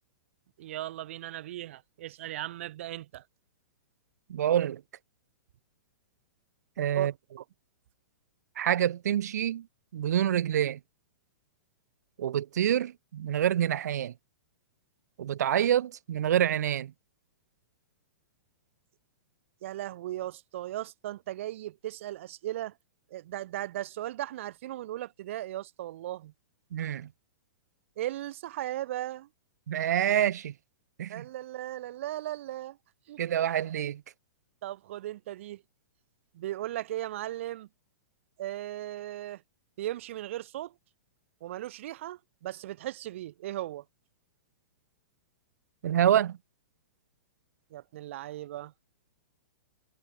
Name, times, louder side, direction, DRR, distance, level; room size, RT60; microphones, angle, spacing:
voice 1, 0.6-3.2 6.9-7.4 19.6-22.7 23.1-26.3 28.0-29.3 31.1-32.8 33.1-33.2 33.5-33.6 34.6-35.6 36.3-37.7 38.4-39.4 39.8-40.7 41.4-43.8 47.7-48.7, right 14 dB, 50° right, 1.3 m, -37 dB
voice 2, 4.3-4.8 6.8-7.1 8.6-9.7 9.9-10.8 12.2-14.1 15.2-16.9 26.7-27.1 29.7-30.5 31.0-31.3 33.2-34.0 45.8-46.4, right 10 dB, 90° right, 0.3 m, -27 dB
hypercardioid pair, 165°, 9 cm